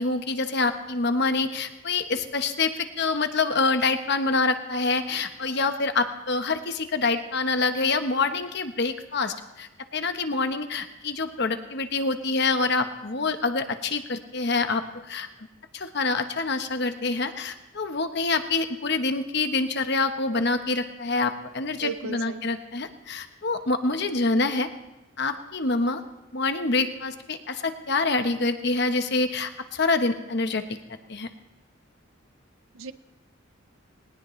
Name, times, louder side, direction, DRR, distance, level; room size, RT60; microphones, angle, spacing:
voice 1, 0.0-15.3 15.7-24.7 25.2-26.0 26.3-30.6 31.1-31.3, left 3 dB, 50° left, 8 dB, 1.0 m, -26 dB
voice 2, 21.8-22.5 32.7-32.9, right 4 dB, 75° right, 13 dB, 0.7 m, -35 dB
20.5 x 19.0 x 3.2 m, 1.0 s
head